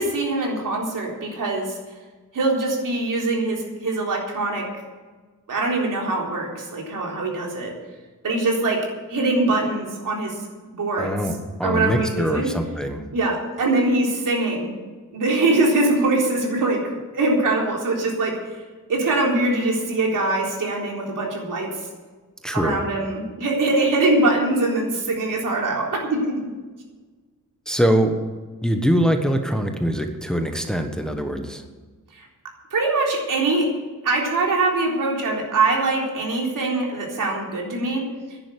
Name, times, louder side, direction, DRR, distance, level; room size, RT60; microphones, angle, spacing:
voice 1, 0.0-1.8 2.3-4.7 5.5-7.7 8.2-10.4 10.6-11.3 11.6-12.5 13.1-14.7 15.1-18.6 18.9-21.9 22.5-26.5 32.1-32.3 32.7-33.7 34.0-38.4, right 2 dB, 75° right, -1 dB, 3.8 m, -23 dB
voice 2, 11.0-13.0 22.4-22.8 27.7-28.1 28.6-31.6, equal, ahead, 5 dB, 1.3 m, -23 dB
11.5 x 10.5 x 8.3 m, 1.4 s
wide cardioid pair, 120°, 32 cm